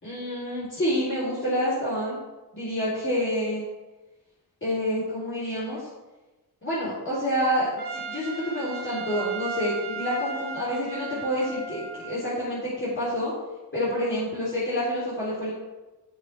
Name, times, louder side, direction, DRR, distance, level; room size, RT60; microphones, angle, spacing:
voice 1, 0.0-2.2 2.5-3.6 4.6-5.9 6.6-13.3 13.7-15.5, equal, 30° left, -10 dB, 3.6 m, -28 dB
Trumpet, 7.8-12.4, right 4 dB, 80° right, 3.3 m, -36 dB
17.0 x 6.2 x 3.4 m, 1.2 s
wide cardioid pair, 130°, 40 cm